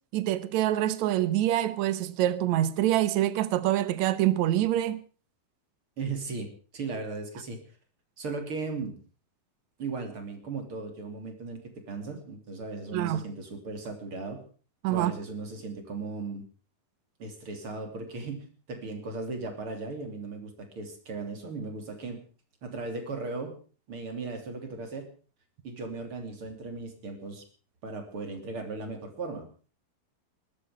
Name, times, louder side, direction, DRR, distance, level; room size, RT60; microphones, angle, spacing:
voice 1, 0.1-5.0 12.9-13.2 14.8-15.1, right 13 dB, 65° right, 2.0 m, -25 dB
voice 2, 6.0-7.6 8.2-8.9 9.8-11.6 11.9-14.4 14.9-16.4 17.2-22.2 22.6-23.6 23.9-25.1 25.6-27.4 27.8-29.5, right 3 dB, 40° right, 3.5 m, -37 dB
20.0 x 12.5 x 5.0 m
omnidirectional pair, 4.1 m